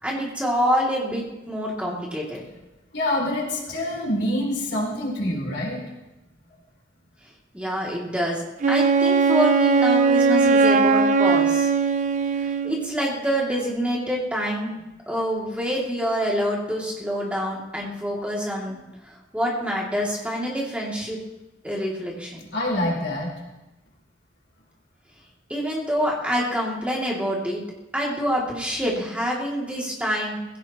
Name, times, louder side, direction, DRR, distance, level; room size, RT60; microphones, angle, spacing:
voice 1, 0.0-2.5 7.5-11.7 12.6-14.7 15.1-21.2 21.6-22.5 25.5-27.6 27.9-30.4, equal, 5° right, -4 dB, 2.6 m, -26 dB
voice 2, 2.9-5.8 22.5-23.4, left 1 dB, 70° left, -2 dB, 3.9 m, -26 dB
Wind instrument woodwind instrument, 8.6-13.0, right 4 dB, 40° right, 0.5 m, -19 dB
20.0 x 16.5 x 3.1 m, 1.0 s
head